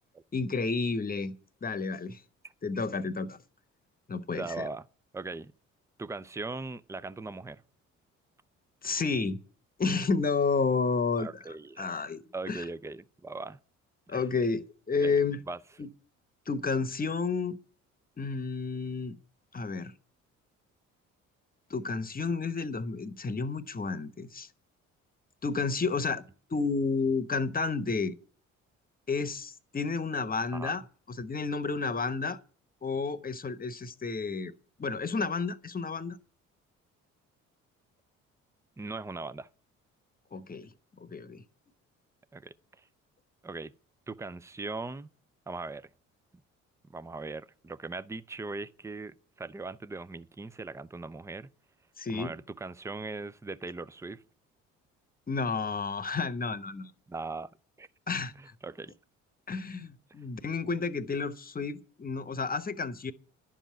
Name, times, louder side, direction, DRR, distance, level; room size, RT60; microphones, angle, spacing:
voice 1, 0.3-1.3 1.6-2.2 2.6-3.4 4.1-4.7 8.8-9.4 9.8-11.3 11.8-12.6 14.1-15.4 15.8-15.9 16.5-17.6 18.2-19.2 19.5-19.9 21.7-24.5 25.4-26.2 26.5-28.2 29.1-30.8 31.2-32.4 32.8-34.5 34.8-36.2 40.3-40.7 41.0-41.4 52.0-52.3 55.3-56.9 58.1-58.3 59.5-63.1, left 4 dB, 20° left, 1.1 m, -31 dB
voice 2, 4.3-4.9 5.1-5.5 6.0-7.6 11.2-11.9 12.3-13.6 14.1-14.2 15.0-15.2 15.5-15.6 30.5-30.7 38.8-39.5 42.3-42.8 43.4-43.7 44.1-45.1 45.5-45.9 46.9-51.5 52.1-54.2 57.1-57.5 57.8-57.9 58.4-58.9, right 3 dB, 5° right, 0.5 m, -39 dB
11.5 x 7.3 x 8.3 m
figure-of-eight pair, 45°, 39 cm